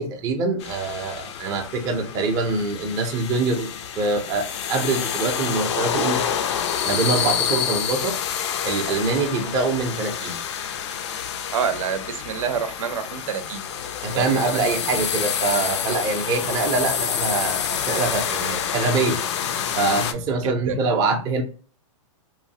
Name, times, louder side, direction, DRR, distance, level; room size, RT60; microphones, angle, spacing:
voice 1, 0.0-6.4 6.9-8.1 8.6-10.4 14.0-19.2 19.8-21.4, right 3 dB, 20° right, 2 dB, 0.4 m, -24 dB
sound 1, 0.6-20.1, left 8 dB, 60° left, 0.4 m, -28 dB
voice 2, 11.5-13.7 14.1-14.6 20.4-20.8, right 7 dB, 80° right, 9 dB, 0.6 m, -27 dB
3.0 x 2.0 x 2.7 m, 0.40 s
hypercardioid pair, 150°, 17 cm